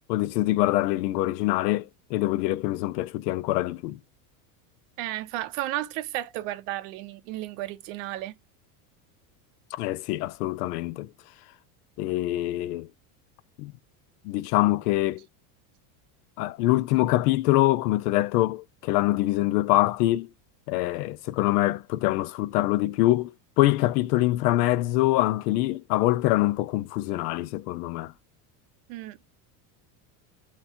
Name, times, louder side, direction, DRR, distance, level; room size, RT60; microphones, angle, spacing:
voice 1, 0.1-4.0 9.7-11.1 12.0-12.9 13.6-13.7 14.2-15.2 16.4-20.3 20.7-28.1, left 17 dB, 85° left, 0.5 m, -24 dB
voice 2, 5.0-8.4 28.9-29.2, right 15 dB, 55° right, 0.7 m, -33 dB
3.3 x 2.9 x 4.3 m
supercardioid pair, 155°, 46 cm